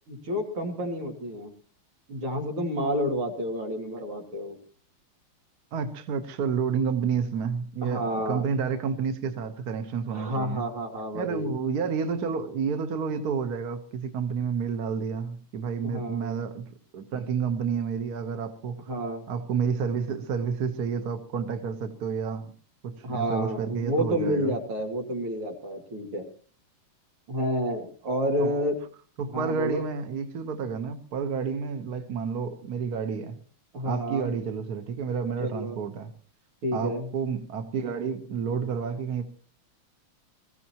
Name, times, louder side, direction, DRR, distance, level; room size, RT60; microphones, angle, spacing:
voice 1, 0.1-1.5 2.1-4.6 7.8-8.5 10.1-11.5 15.8-16.4 18.9-19.3 23.0-26.3 27.3-28.8 29.3-29.9 33.7-34.3 35.4-35.8 36.6-37.1, equal, 85° right, 3.4 m, -30 dB
voice 2, 5.7-10.6 11.1-18.9 19.3-22.5 22.8-24.5 28.4-28.5 29.2-33.4 33.8-36.1 36.7-39.2, right 6 dB, 50° right, 1.5 m, -30 dB
23.0 x 15.5 x 2.9 m
omnidirectional pair, 2.3 m